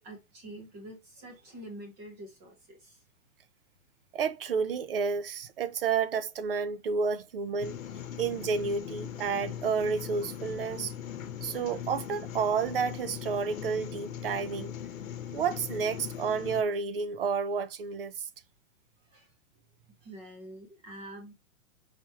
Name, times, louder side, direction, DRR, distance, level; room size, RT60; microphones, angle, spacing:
voice 1, 0.0-3.0 19.1-19.3 20.0-21.3, right 1 dB, 15° right, 0.9 m, -46 dB
voice 2, 4.1-7.8 8.2-10.9 11.4-14.7 15.3-18.3, right 5 dB, 45° right, 0.5 m, -30 dB
sound 1, 7.6-16.6, left 9 dB, 70° left, 0.9 m, -40 dB
5.0 x 3.0 x 2.8 m
hypercardioid pair, 170°, 42 cm